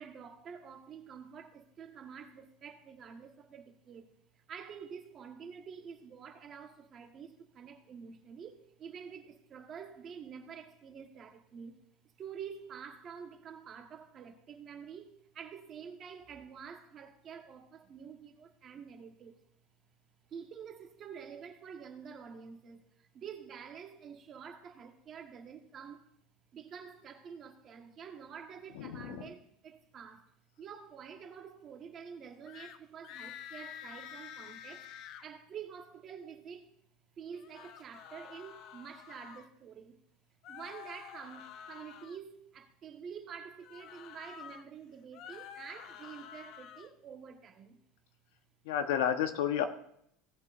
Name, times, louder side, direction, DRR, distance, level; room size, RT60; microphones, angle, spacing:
voice 1, 0.0-4.1 4.3-11.8 12.2-19.4 20.3-26.1 26.5-30.3 30.6-34.9 35.2-36.7 37.2-40.0 40.5-47.8, right 7 dB, 35° right, 1.3 m, -48 dB
voice 2, 28.7-29.3 48.6-49.7, left 9 dB, 85° left, 1.0 m, -31 dB
sound 1, 32.5-32.8 33.0-35.2 37.3-39.5 40.4-42.2 43.6-44.6 45.0-46.9, left 9 dB, 50° left, 0.6 m, -49 dB
17.5 x 8.0 x 2.5 m
supercardioid pair, 145°, 0 cm